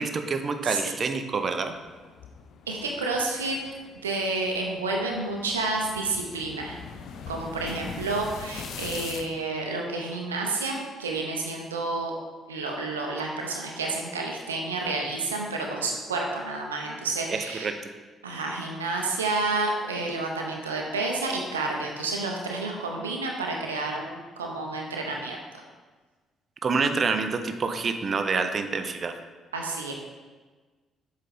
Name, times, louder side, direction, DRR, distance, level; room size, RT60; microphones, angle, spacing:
voice 1, 0.0-1.7 17.3-17.7 26.6-29.1, right 4 dB, 40° right, 7 dB, 0.5 m, -27 dB
sound 1, 1.7-9.3, left 6 dB, 55° left, 0.4 m, -42 dB
voice 2, 2.7-3.6 4.0-6.8 7.3-12.1 12.5-17.7 18.2-25.4 29.5-29.9, right 3 dB, 80° right, 0 dB, 0.6 m, -30 dB
7.4 x 3.8 x 3.5 m, 1.3 s
figure-of-eight pair, 45°, 0 cm